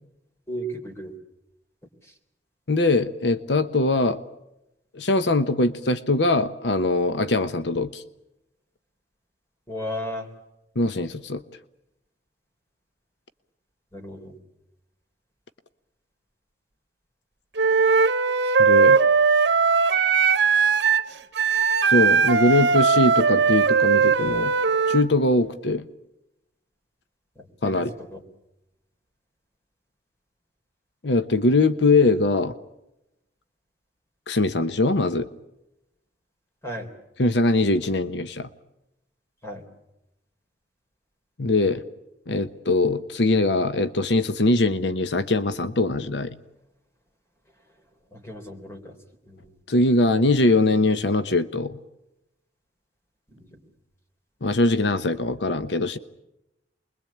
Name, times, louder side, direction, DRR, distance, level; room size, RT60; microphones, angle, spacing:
voice 1, 0.5-1.2 2.0-2.1 9.7-10.3 13.9-14.3 18.4-18.6 27.4-28.2 36.6-36.9 39.4-39.6 48.1-49.0 49.3-49.5 53.3-53.5 54.6-54.7, equal, 15° left, 4 dB, 3.9 m, -35 dB
voice 2, 2.7-4.2 4.9-8.0 10.8-11.4 18.6-19.0 21.9-24.5 24.9-25.8 27.6-27.9 31.0-32.5 34.3-35.3 37.2-38.5 41.4-41.8 42.3-46.4 49.7-51.8 54.4-56.0, left 2 dB, 80° left, 11 dB, 1.0 m, -22 dB
Wind instrument woodwind instrument, 17.6-25.0, right 5 dB, 75° right, 1.3 m, -19 dB
29.0 x 22.0 x 8.6 m, 0.90 s
head